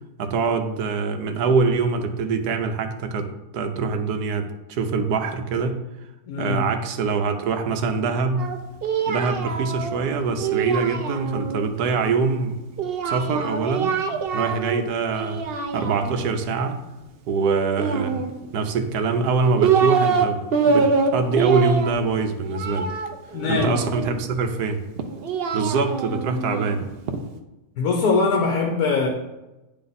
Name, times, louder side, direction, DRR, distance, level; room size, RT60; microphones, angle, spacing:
voice 1, 0.2-5.8 6.4-8.5 9.1-12.6 13.0-14.0 14.3-16.8 17.3-18.2 18.5-22.9 23.5-24.8 25.5-26.8, right 4 dB, 90° right, 6 dB, 1.2 m, -24 dB
voice 2, 6.3-6.6 23.3-23.8 27.8-29.1, left 4 dB, 75° left, 2 dB, 1.3 m, -22 dB
Singing, 8.4-11.6 12.8-14.8 15.1-16.3 17.7-18.7 19.3-20.3 20.5-24.2 25.0-27.2, right 5 dB, 60° right, 0.6 m, -25 dB
9.6 x 3.4 x 4.0 m, 1.0 s
omnidirectional pair, 1.6 m